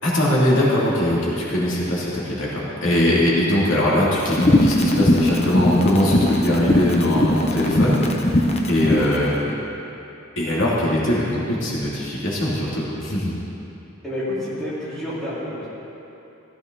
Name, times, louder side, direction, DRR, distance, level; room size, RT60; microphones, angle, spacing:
voice 1, 0.0-9.5 10.4-13.3, left 1 dB, 65° left, -6 dB, 2.9 m, -21 dB
sound 1, 4.3-9.1, left 1 dB, 30° left, 0.9 m, -19 dB
voice 2, 14.0-15.7, left 1 dB, ahead, -11 dB, 3.8 m, -29 dB
16.5 x 14.0 x 4.0 m, 2.9 s
head